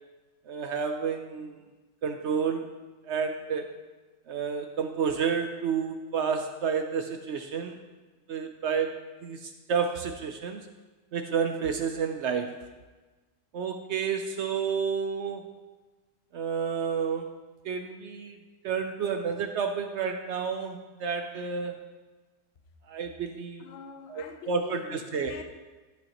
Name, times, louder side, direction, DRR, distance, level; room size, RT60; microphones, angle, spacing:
voice 1, 0.5-1.6 2.0-2.8 3.0-3.7 4.3-7.8 8.3-10.7 11.1-12.6 13.5-15.5 16.3-17.3 17.6-18.4 18.6-21.8 22.9-23.7 24.1-25.3, right 6 dB, 80° right, 6 dB, 0.6 m, -30 dB
voice 2, 23.6-25.4, left 6 dB, 60° left, 7 dB, 0.6 m, -43 dB
12.5 x 9.0 x 2.9 m, 1.3 s
omnidirectional pair, 1.8 m